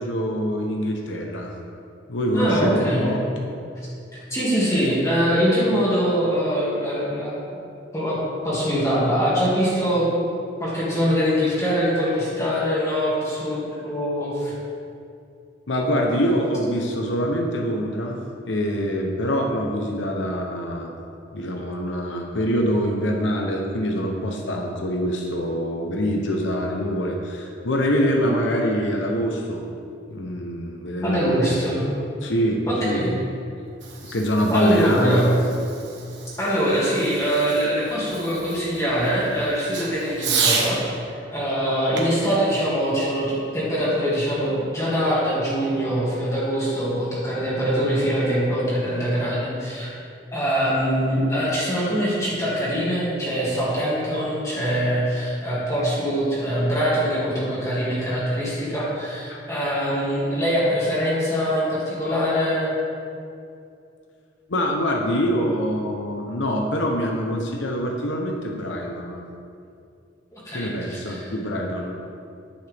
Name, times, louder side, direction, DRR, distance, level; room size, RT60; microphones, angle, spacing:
voice 1, 0.0-1.5 2.1-3.2 15.7-18.2 18.4-20.9 21.3-29.7 30.1-31.6 32.2-33.2 34.1-35.2 59.3-59.4 64.5-69.2 70.5-72.0, equal, 80° left, 1 dB, 0.9 m, -24 dB
voice 2, 2.3-3.1 4.3-7.3 7.9-8.2 8.4-10.2 10.6-14.5 31.0-31.9 32.7-33.1 34.0-34.1 34.5-35.3 36.4-40.8 41.3-50.0 50.3-62.7 70.3-71.3, equal, 15° left, -9 dB, 2.0 m, -23 dB
Fireworks, 33.5-40.8 41.9-43.6, right 5 dB, 70° right, 1.4 m, -31 dB
10.0 x 8.5 x 3.5 m, 2.5 s
head